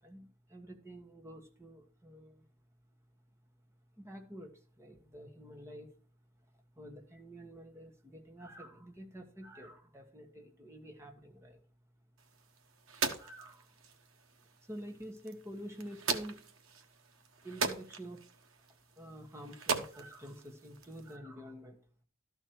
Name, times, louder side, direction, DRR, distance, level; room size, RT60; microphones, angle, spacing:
voice 1, 0.0-2.5 4.0-5.9 6.7-11.6 13.2-13.9 14.6-16.5 17.4-18.3 18.7-21.8, equal, 15° right, 3 dB, 1.4 m, -49 dB
sound 1, 12.2-21.2, right 5 dB, 85° right, 1.3 m, -40 dB
13.0 x 4.5 x 6.5 m, 0.40 s
head